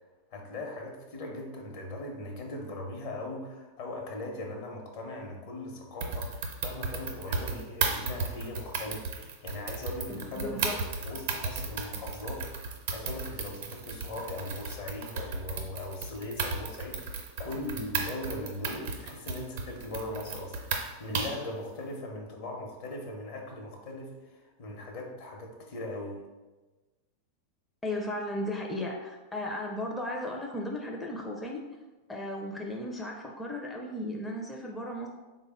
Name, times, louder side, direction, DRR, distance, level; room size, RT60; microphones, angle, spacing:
voice 1, 0.3-26.2, left 1 dB, 60° left, 1 dB, 0.9 m, -39 dB
sound 1, 6.0-21.5, right 4 dB, 65° right, 0.6 m, -35 dB
voice 2, 10.1-10.8 27.8-31.6 32.1-35.1, left 1 dB, 10° left, -1 dB, 0.4 m, -35 dB
3.7 x 2.2 x 3.5 m, 1.2 s
hypercardioid pair, 110°, 0 cm